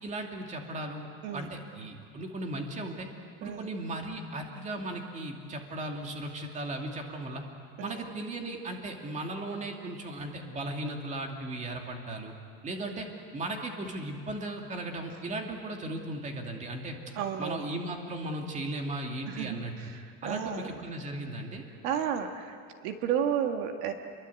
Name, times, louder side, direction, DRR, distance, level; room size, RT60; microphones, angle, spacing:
voice 1, 0.0-3.1 3.4-7.4 7.8-12.3 12.6-13.1 13.3-17.1 17.4-19.7 20.2-21.6, right 1 dB, 20° right, 2 dB, 2.5 m, -36 dB
voice 2, 1.2-1.6 3.4-3.7 7.8-8.0 17.2-17.6 19.3-20.8 21.8-23.9, right 8 dB, 70° right, 5 dB, 2.0 m, -32 dB
29.5 x 22.5 x 8.4 m, 2.2 s
cardioid pair, 175°, 35 cm